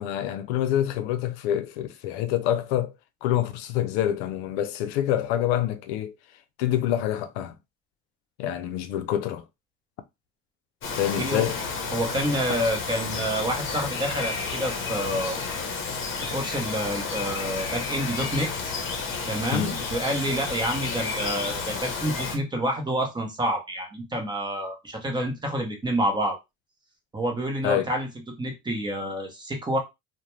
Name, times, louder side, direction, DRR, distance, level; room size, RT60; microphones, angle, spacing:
voice 1, 0.0-2.9 3.2-6.1 6.6-7.6 8.4-9.4 11.0-11.6 19.5-19.8 27.6-27.9, left 11 dB, 90° left, 0.5 m, -26 dB
Bird vocalization bird call bird song, 10.8-22.4, left 4 dB, 40° left, 0.8 m, -31 dB
voice 2, 11.2-11.5 11.9-15.4 16.2-18.7 19.3-26.4 27.1-28.1 28.4-29.8, equal, 15° right, 0.8 m, -28 dB
2.4 x 2.2 x 3.0 m
cardioid pair, 120°, 31 cm